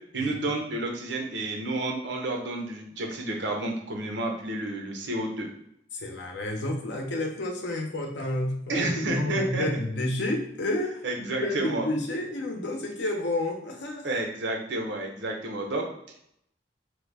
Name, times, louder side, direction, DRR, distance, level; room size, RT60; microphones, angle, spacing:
voice 1, 0.1-5.5 8.7-9.7 11.0-11.9 14.0-15.9, right 2 dB, 80° right, 1 dB, 0.7 m, -30 dB
voice 2, 5.9-14.1, left 1 dB, 75° left, 2 dB, 0.6 m, -30 dB
3.1 x 2.1 x 3.3 m, 0.73 s
head